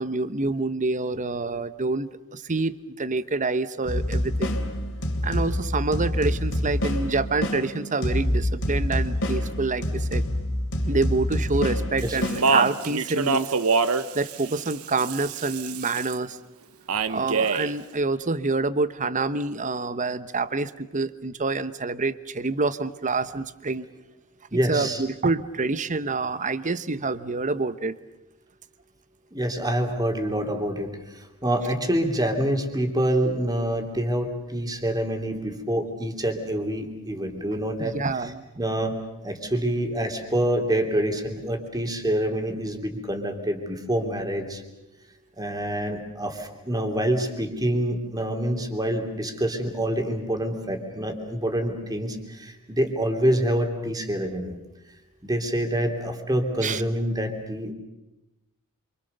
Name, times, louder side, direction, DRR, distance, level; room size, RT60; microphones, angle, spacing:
voice 1, 0.0-4.6 5.2-10.2 10.9-13.5 14.1-16.4 17.1-23.9 24.5-28.0 37.8-38.4 56.6-56.8, right 3 dB, 35° right, 13 dB, 1.0 m, -27 dB
sound 1, 3.8-13.0, left 1 dB, 60° left, 3.2 m, -27 dB
Speech, 12.0-16.2 16.9-17.7, right 4 dB, 75° right, 1.1 m, -26 dB
voice 2, 24.5-25.0 29.3-37.9 38.6-38.9 39.2-44.6 45.4-54.5 55.2-57.7, right 1 dB, 20° right, 3 dB, 3.1 m, -26 dB
27.0 x 26.0 x 6.8 m, 0.96 s
head